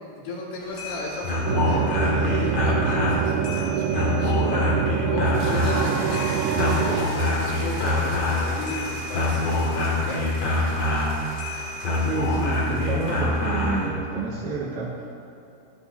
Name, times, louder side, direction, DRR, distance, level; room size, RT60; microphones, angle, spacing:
voice 1, 0.2-4.8 5.1-10.3, left 1 dB, 75° left, -6 dB, 5.2 m, -34 dB
sound 1, 0.6-13.9, left 2 dB, 45° left, 2.5 m, -25 dB
sound 2, 1.5-7.1, right 11 dB, 85° right, 2.9 m, -26 dB
sound 3, 5.3-13.5, right 1 dB, 50° right, 4.2 m, -37 dB
voice 2, 12.0-15.2, right 3 dB, 65° right, -4 dB, 3.0 m, -29 dB
29.5 x 11.5 x 2.8 m, 2.7 s
omnidirectional pair, 5.4 m